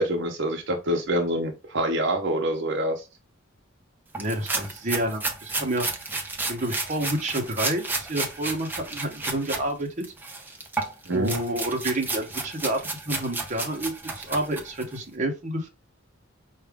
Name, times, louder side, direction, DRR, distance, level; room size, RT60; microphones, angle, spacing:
voice 1, 0.0-3.0 11.1-11.3, right 1 dB, 60° right, 0.8 m, -26 dB
sound 1, 4.1-9.6 10.0-15.0, right 3 dB, 10° right, 0.6 m, -32 dB
voice 2, 4.2-5.9 6.5-9.9 11.1-12.8 13.0-15.7, right 1 dB, 35° right, 0.9 m, -29 dB
4.8 x 2.5 x 3.5 m
head